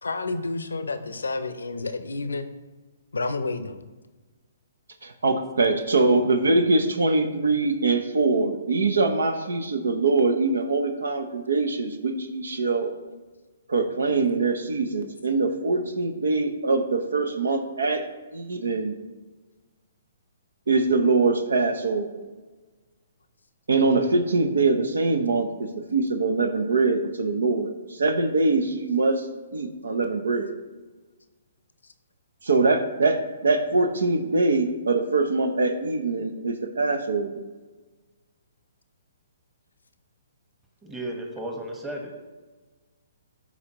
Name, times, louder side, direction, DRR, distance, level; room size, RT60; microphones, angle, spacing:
voice 1, 0.0-2.5 3.1-3.8, left 3 dB, 85° left, 10 dB, 0.6 m, -30 dB
voice 2, 5.0-12.9 13.7-18.0 18.3-19.0 20.7-22.1 23.7-27.7 28.0-29.2 29.5-30.6 32.4-37.4, right 3 dB, 80° right, 7 dB, 0.8 m, -23 dB
voice 3, 40.8-42.1, right 1 dB, 10° right, 1 dB, 1.2 m, -34 dB
12.0 x 4.1 x 3.0 m, 1.3 s
hypercardioid pair, 135°, 0 cm